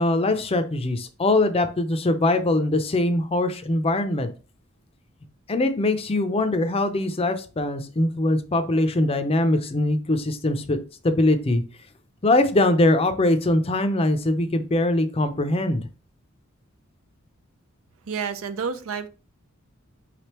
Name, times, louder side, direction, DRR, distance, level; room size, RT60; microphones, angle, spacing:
voice 1, 0.0-4.3 5.5-10.8 11.0-11.6 12.2-15.8, left 2 dB, 30° left, 0.5 m, -22 dB
voice 2, 18.1-19.1, right 6 dB, 70° right, 0.5 m, -29 dB
4.9 x 3.3 x 3.0 m
head